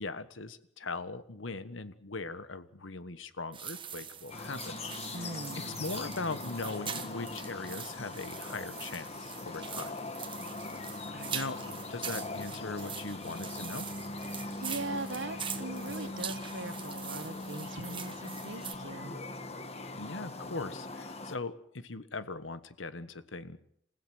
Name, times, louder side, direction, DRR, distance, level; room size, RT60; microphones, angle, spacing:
voice 1, 0.0-4.8 5.1-5.4 5.8-9.9 11.3-13.9 20.0-23.6, left 3 dB, 85° left, 13 dB, 1.3 m, -40 dB
sound 1, 3.5-18.8, right 8 dB, 25° right, 1.4 m, -43 dB
sound 2, 4.3-21.4, left 2 dB, 35° left, 1.4 m, -41 dB
voice 2, 5.1-5.8 11.1-11.8 14.6-19.2, right 2 dB, 80° right, 10 dB, 1.6 m, -41 dB
28.5 x 15.5 x 6.3 m, 0.70 s
head